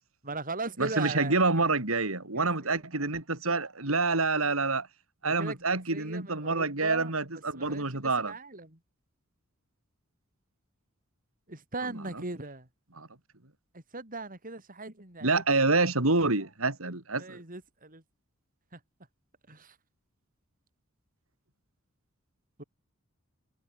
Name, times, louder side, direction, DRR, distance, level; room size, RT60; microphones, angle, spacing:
voice 1, 0.2-1.4 2.3-2.8 5.2-7.8 8.2-8.8 11.5-12.7 13.7-15.4 16.8-18.0 18.7-18.8 19.5-19.8 22.6-22.7, right 3 dB, 40° right, 6.1 m, -39 dB
voice 2, 0.8-4.9 5.2-8.3 13.0-13.1 15.2-17.4, right 3 dB, 80° right, 3.7 m, -27 dB
head